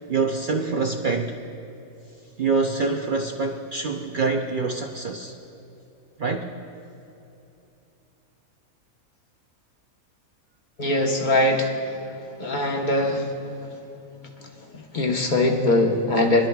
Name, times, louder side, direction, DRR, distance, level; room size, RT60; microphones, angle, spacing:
voice 1, 0.1-1.4 2.4-5.4 6.2-6.5, right 4 dB, 55° right, 3 dB, 0.5 m, -25 dB
voice 2, 10.8-11.8 12.4-13.3 14.9-16.5, left 1 dB, 35° left, 1 dB, 1.1 m, -21 dB
24.5 x 12.0 x 2.3 m, 2.9 s
omnidirectional pair, 1.6 m